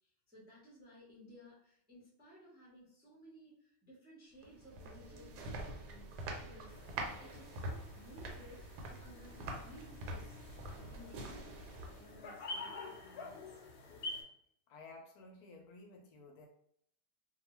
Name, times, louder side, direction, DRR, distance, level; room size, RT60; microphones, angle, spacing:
voice 1, 0.0-10.4 10.9-11.5 11.8-13.6, equal, 10° right, -6 dB, 0.5 m, -58 dB
sound 1, 4.4-12.2, right 2 dB, 90° right, 1.2 m, -45 dB
sound 2, 6.7-14.2, left 2 dB, 90° left, 0.5 m, -49 dB
voice 2, 14.7-16.5, left 3 dB, 75° left, 2 dB, 1.0 m, -54 dB
2.6 x 2.3 x 2.9 m, 0.68 s
omnidirectional pair, 1.7 m